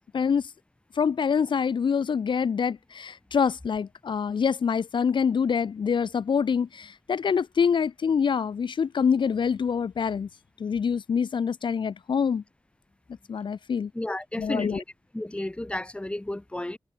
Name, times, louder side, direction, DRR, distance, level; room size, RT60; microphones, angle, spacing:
voice 1, 0.1-0.5 0.9-10.3 10.6-12.4 13.3-13.9 14.4-14.8, left 6 dB, 65° left, 1.5 m, -25 dB
voice 2, 13.9-14.8 15.1-16.8, left 1 dB, 10° left, 2.7 m, -32 dB
cardioid pair, 75°, 9 cm